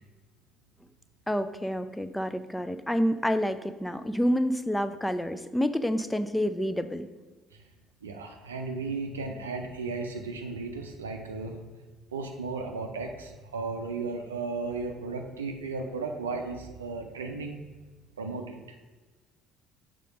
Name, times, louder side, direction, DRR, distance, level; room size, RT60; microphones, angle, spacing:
voice 1, 1.3-7.1, equal, 5° left, 11 dB, 0.5 m, -28 dB
voice 2, 8.0-11.6 12.1-17.6 18.2-18.6, right 4 dB, 75° right, 4 dB, 0.5 m, -35 dB
6.7 x 3.7 x 5.1 m, 1.3 s
figure-of-eight pair, 55°, 0 cm